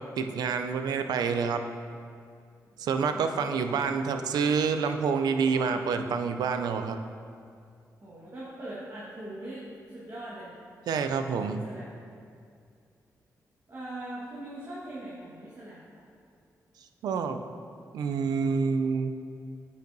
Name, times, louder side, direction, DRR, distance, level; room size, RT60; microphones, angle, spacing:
voice 1, 0.2-1.6 2.8-7.0 10.9-11.6 17.0-17.4 17.9-19.1, right 5 dB, 85° right, 7 dB, 0.4 m, -27 dB
voice 2, 2.7-4.1 5.3-6.0 8.0-9.6 9.9-10.5 11.1-11.9 13.7-16.1, right 1 dB, 45° right, -8 dB, 1.4 m, -42 dB
8.5 x 5.4 x 2.6 m, 2.3 s
cardioid pair, 70°, 7 cm